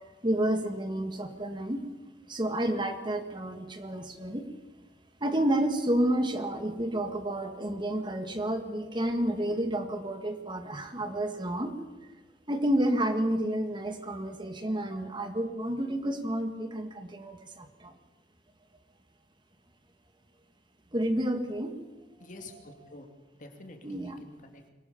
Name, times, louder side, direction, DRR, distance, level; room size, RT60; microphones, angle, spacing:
voice 1, 0.2-1.8 2.3-4.5 5.2-11.7 12.5-17.9 20.9-21.7 23.8-24.2, right 1 dB, 25° right, 7 dB, 1.8 m, -30 dB
voice 2, 22.2-23.1 23.4-24.7, left 2 dB, 45° left, 4 dB, 2.6 m, -47 dB
23.5 x 18.0 x 7.2 m, 1.2 s
head